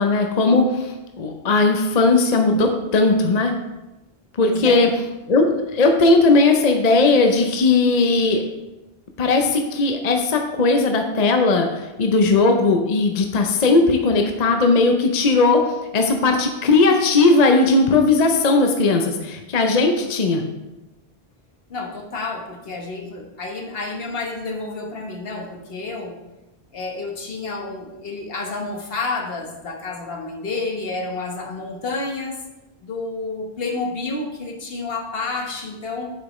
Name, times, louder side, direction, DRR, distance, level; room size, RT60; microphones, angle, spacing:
voice 1, 0.0-3.5 4.4-4.9 5.3-8.4 9.2-15.6 15.9-20.4, left 3 dB, 45° left, 4 dB, 0.7 m, -17 dB
voice 2, 4.4-4.8 21.7-26.2 26.7-32.4 32.8-36.1, left 3 dB, 65° left, 2 dB, 1.3 m, -30 dB
8.4 x 6.6 x 3.1 m, 1.0 s
omnidirectional pair, 1.1 m